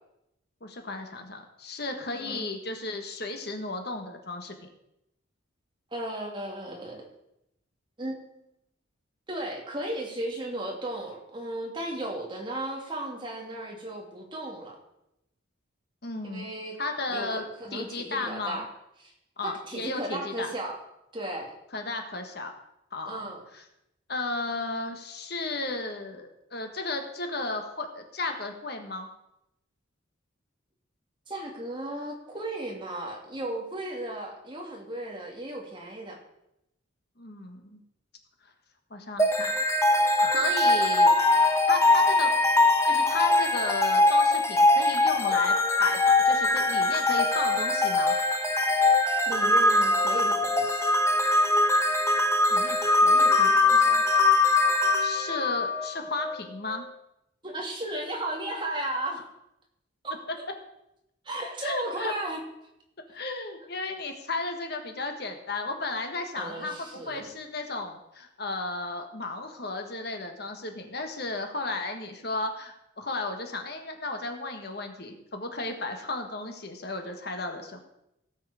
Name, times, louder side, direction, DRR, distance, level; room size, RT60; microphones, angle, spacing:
voice 1, 0.6-4.7 16.0-16.5 16.8-17.4 17.7-18.6 19.4-20.5 21.7-22.5 22.9-23.3 23.5-23.6 24.1-29.1 37.2-37.8 38.9-39.6 40.2-41.1 41.7-42.3 42.6-48.1 52.5-54.0 54.6-54.7 55.0-56.8 61.6-62.1 63.1-77.8, left 2 dB, 50° left, 5 dB, 1.5 m, -34 dB
voice 2, 2.1-2.5 5.9-7.1 8.0-8.3 9.3-14.8 16.3-16.8 17.1-18.7 19.4-20.8 21.1-21.5 23.0-23.4 31.3-36.2 49.3-50.9 57.4-59.2 60.0-60.2 61.2-62.4 66.3-67.3, right 1 dB, 25° right, 0 dB, 2.3 m, -35 dB
sound 1, 39.2-56.3, left 2 dB, 15° left, 0.9 m, -22 dB
17.0 x 7.5 x 5.0 m, 0.84 s
head